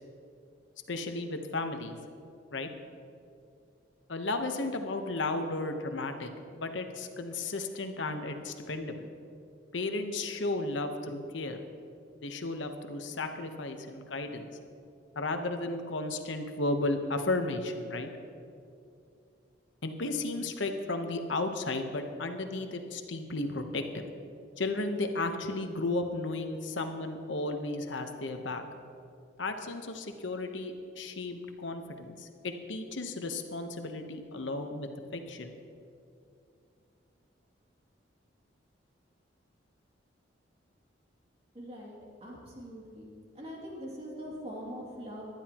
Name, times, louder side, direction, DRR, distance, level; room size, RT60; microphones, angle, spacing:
voice 1, 0.9-2.0 2.5-2.7 4.1-9.1 9.7-11.7 12.2-14.5 15.1-18.1 19.8-24.0 24.6-28.6 29.4-35.5, left 2 dB, 80° left, 6 dB, 1.0 m, -34 dB
voice 2, 41.5-43.1 43.3-45.3, equal, 35° right, -4 dB, 2.6 m, -42 dB
19.0 x 12.0 x 3.0 m, 2.5 s
head